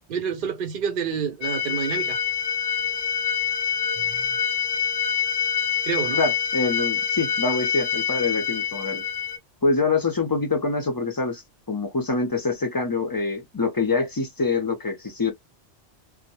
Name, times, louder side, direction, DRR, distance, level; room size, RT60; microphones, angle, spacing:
voice 1, 0.1-2.2 5.8-6.2, right 7 dB, 60° right, 0.6 m, -28 dB
sound 1, 1.4-9.4, left 8 dB, 80° left, 0.9 m, -26 dB
voice 2, 6.2-9.0 9.6-11.4 11.7-15.3, left 3 dB, 30° left, 0.4 m, -25 dB
2.1 x 2.0 x 2.9 m
omnidirectional pair, 1.2 m